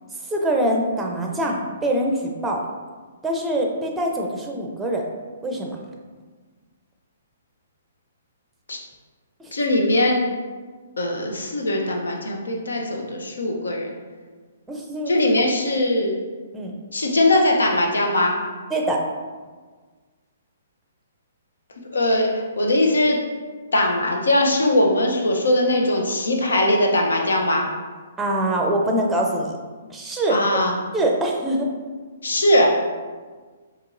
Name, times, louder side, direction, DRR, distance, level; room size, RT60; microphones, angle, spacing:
voice 1, 0.3-2.6 3.2-5.0 5.4-5.8 9.4-9.5 14.7-15.1 16.5-16.7 18.7-19.0 28.2-29.5 29.9-30.4 30.9-31.7, right 1 dB, 10° right, 0 dB, 0.6 m, -24 dB
voice 2, 9.5-10.2 11.0-13.9 15.1-16.2 16.9-18.4 21.9-23.2 23.7-27.7 30.3-30.7 32.2-32.7, left 1 dB, 80° left, 1 dB, 0.7 m, -20 dB
4.6 x 2.9 x 2.5 m, 1.4 s
hypercardioid pair, 130°, 0 cm